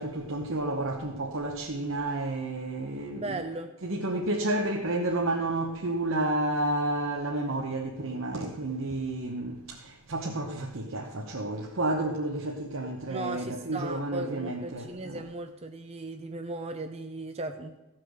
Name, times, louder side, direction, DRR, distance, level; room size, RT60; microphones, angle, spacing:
voice 1, 0.0-3.4 3.8-15.2, right 2 dB, 65° right, 1.0 m, -31 dB
voice 2, 3.1-3.7 13.1-17.8, right 2 dB, 30° right, 0.6 m, -37 dB
15.0 x 5.9 x 6.4 m
head